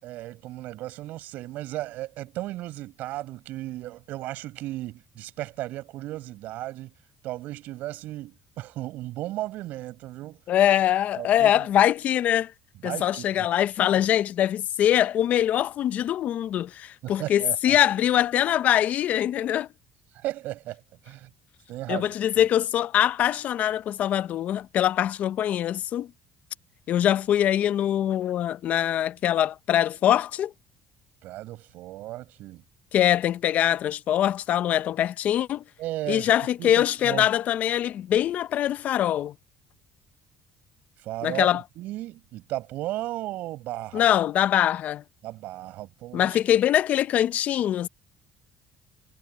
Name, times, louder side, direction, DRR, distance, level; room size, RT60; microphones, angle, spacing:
voice 1, 0.0-6.9 7.2-10.4 11.2-11.7 12.8-13.5 17.0-17.8 20.2-20.8 21.1-21.3 21.7-22.1 31.2-32.6 35.8-37.3 41.0-41.5 41.8-44.1 45.2-46.3, right 16 dB, 75° right, 7.0 m, -35 dB
voice 2, 10.5-12.5 12.8-19.7 21.9-26.1 26.9-30.5 32.9-35.6 36.1-39.3 41.2-41.6 43.9-45.0 46.1-47.9, left 11 dB, 55° left, 0.6 m, -23 dB
cardioid pair, 110°, 3 cm